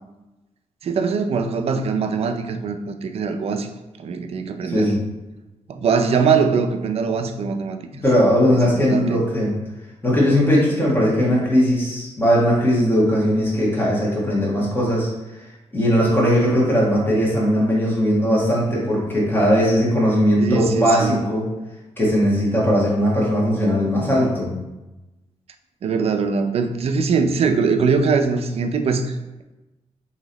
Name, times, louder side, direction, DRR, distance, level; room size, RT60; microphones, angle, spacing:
voice 1, 0.8-3.7 4.0-4.9 5.7-7.8 8.6-9.2 20.4-21.2 25.8-29.4, right 5 dB, 55° right, 7 dB, 0.4 m, -22 dB
voice 2, 4.6-5.0 8.0-9.5 10.0-15.1 15.7-21.5 22.0-24.6, equal, 15° left, -6 dB, 1.4 m, -19 dB
3.0 x 2.7 x 3.9 m, 1.0 s
cardioid pair, 110°, 12 cm